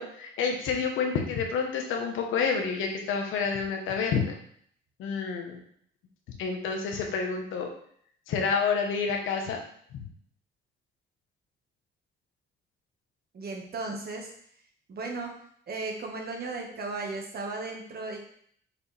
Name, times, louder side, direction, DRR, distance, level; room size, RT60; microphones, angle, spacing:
voice 1, 0.0-4.3 5.0-5.6 6.4-7.7 8.3-9.6 9.9-10.1, left 5 dB, 90° left, 2 dB, 1.3 m, -29 dB
voice 2, 13.3-14.3 14.9-15.3 15.7-18.2, right 3 dB, 50° right, 1 dB, 1.6 m, -35 dB
6.3 x 4.9 x 3.4 m, 0.63 s
cardioid pair, 90°, 20 cm